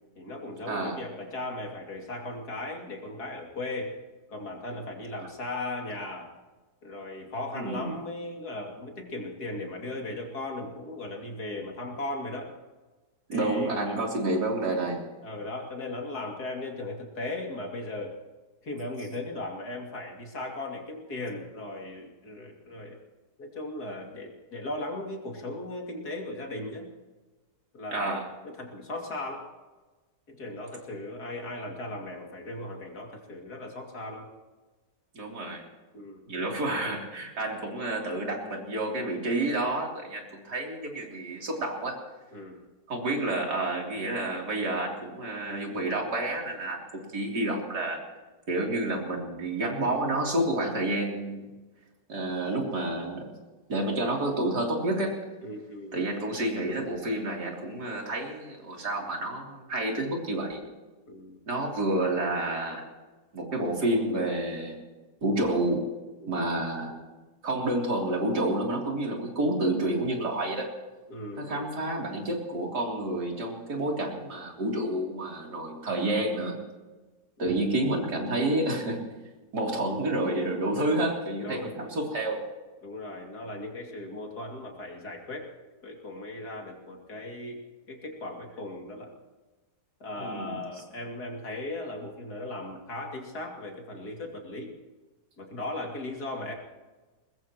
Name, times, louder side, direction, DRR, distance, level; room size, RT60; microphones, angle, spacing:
voice 1, 0.1-3.9 4.3-6.3 6.8-12.5 13.3-14.1 15.2-18.1 18.6-23.0 23.4-26.9 27.7-29.5 30.3-34.3 35.9-36.2 42.3-42.6 55.4-56.0 61.1-61.4 66.2-66.4 71.1-71.8 77.4-77.7 81.4-81.7 82.8-85.5 85.8-87.6 87.9-89.1 90.0-94.7 95.4-96.5, left 2 dB, 75° left, 0 dB, 3.2 m, -37 dB
voice 2, 0.7-1.0 7.5-8.0 13.3-15.0 27.9-28.2 35.1-35.7 36.3-42.0 42.9-48.0 48.5-51.5 52.1-53.4 53.7-55.2 55.9-60.6 61.5-62.8 63.3-64.8 65.2-65.9 66.3-66.9 67.4-70.7 71.4-76.6 77.4-79.0 79.5-82.4 90.2-90.6, right 1 dB, 90° right, -1 dB, 4.0 m, -29 dB
21.5 x 21.0 x 3.1 m, 1.2 s
omnidirectional pair, 1.7 m